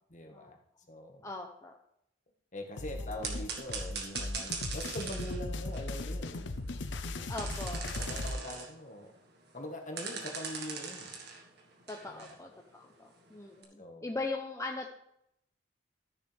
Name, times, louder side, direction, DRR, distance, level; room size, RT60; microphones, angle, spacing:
voice 1, 0.1-0.6 0.9-1.3 2.5-6.5 7.9-9.1 9.5-11.2 12.1-12.4 13.8-14.1, left 1 dB, 40° left, 3 dB, 1.6 m, -43 dB
voice 2, 1.2-1.7 7.3-7.9 11.9-14.9, left 3 dB, 15° left, 1 dB, 0.8 m, -40 dB
sound 1, 2.8-8.4, left 2 dB, 70° left, 0.8 m, -38 dB
sound 2, 3.2-5.4 5.7-6.9 7.4-8.7 9.1-9.2 9.5-9.6 10.0-12.4 13.3-13.4 13.6-13.7, right 5 dB, 60° right, 1.7 m, -40 dB
13.5 x 6.8 x 3.5 m, 0.76 s
head